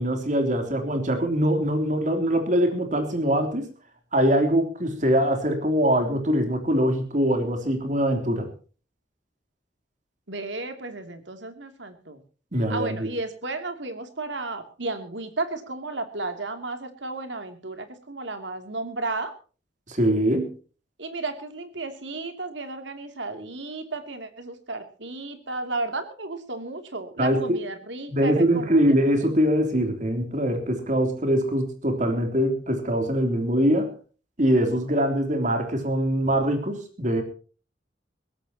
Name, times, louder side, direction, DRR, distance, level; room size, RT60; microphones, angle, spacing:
voice 1, 0.0-3.7 4.1-8.5 12.5-13.1 19.9-20.5 27.2-27.6 28.1-33.9 34.4-37.2, equal, 45° right, 6 dB, 3.4 m, -23 dB
voice 2, 10.3-12.2 12.7-19.3 21.0-28.9, right 2 dB, 75° right, 7 dB, 2.9 m, -33 dB
22.0 x 17.5 x 2.9 m, 0.38 s
head